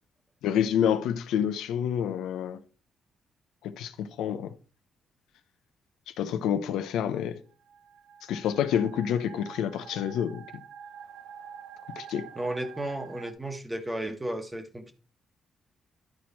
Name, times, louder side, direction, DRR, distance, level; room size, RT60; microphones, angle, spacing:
voice 1, 0.4-2.6 3.6-4.5 6.2-7.4 8.3-10.4 12.0-12.2, left 9 dB, 85° left, 0.7 m, -28 dB
sound 1, 7.5-13.3, right 8 dB, 85° right, 0.9 m, -47 dB
voice 2, 12.3-14.9, right 1 dB, 15° right, 1.3 m, -34 dB
11.0 x 4.4 x 4.2 m
cardioid pair, 90°, 0 cm